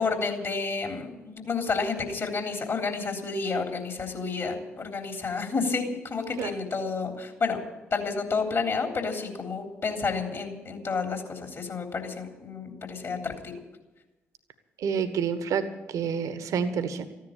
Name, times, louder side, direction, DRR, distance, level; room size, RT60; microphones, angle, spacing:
voice 1, 0.0-7.6 7.9-13.6, left 4 dB, 45° left, 3 dB, 3.5 m, -30 dB
voice 2, 14.8-15.7 15.9-17.1, right 7 dB, 60° right, 11 dB, 1.4 m, -28 dB
15.0 x 10.5 x 8.7 m, 1.1 s
figure-of-eight pair, 40°, 6 cm